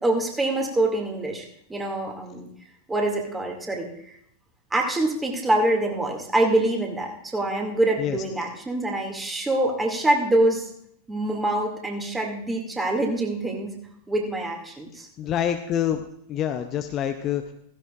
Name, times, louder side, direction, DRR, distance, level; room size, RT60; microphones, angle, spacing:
voice 1, 0.0-2.5 2.9-4.2 4.7-10.7 11.1-13.7 14.1-15.1, right 1 dB, 10° right, 1 dB, 2.3 m, -25 dB
voice 2, 15.2-16.0 16.3-17.5, left 10 dB, 30° left, 7 dB, 0.7 m, -26 dB
16.0 x 15.5 x 2.5 m, 0.70 s
figure-of-eight pair, 90°, 0 cm